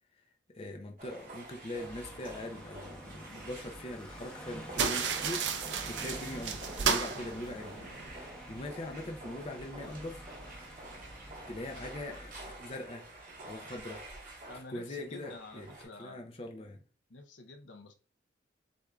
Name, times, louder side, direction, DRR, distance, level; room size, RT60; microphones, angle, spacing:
voice 1, 0.5-10.2 11.5-13.1 13.4-14.0 14.7-16.8, left 1 dB, 30° left, 0.5 m, -42 dB
sound 1, 1.0-15.8, right 2 dB, 45° right, 2.2 m, -49 dB
sound 2, 1.8-12.6, equal, 5° left, 0.9 m, -49 dB
sound 3, 4.7-8.1, right 6 dB, 65° right, 0.5 m, -33 dB
voice 2, 14.5-16.3 17.1-17.9, left 3 dB, 75° left, 0.7 m, -49 dB
7.7 x 2.6 x 2.3 m
head